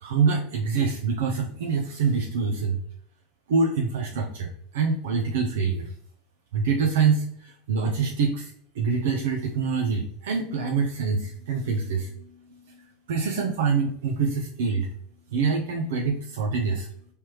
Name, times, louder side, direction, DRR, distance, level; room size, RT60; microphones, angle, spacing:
voice 1, 0.0-2.8 3.5-5.9 6.5-14.9 15.3-16.9, right 5 dB, 80° right, 1 dB, 0.5 m, -25 dB
4.5 x 3.3 x 2.9 m, 0.64 s
hypercardioid pair, 100°, 0 cm